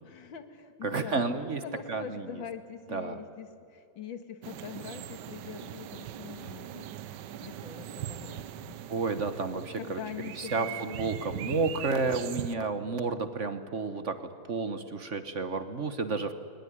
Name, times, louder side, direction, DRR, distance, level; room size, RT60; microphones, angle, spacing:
voice 1, 0.0-7.0 7.4-8.8 9.7-11.0, left 8 dB, 85° left, 9 dB, 2.3 m, -43 dB
voice 2, 0.8-1.6 1.9-2.2 2.9-3.2 8.9-10.0 10.4-16.3, right 4 dB, 45° right, 10 dB, 1.3 m, -31 dB
sound 1, 4.4-12.6, right 11 dB, 70° right, 1.3 m, -40 dB
21.0 x 20.0 x 10.0 m, 2.6 s
omnidirectional pair, 2.0 m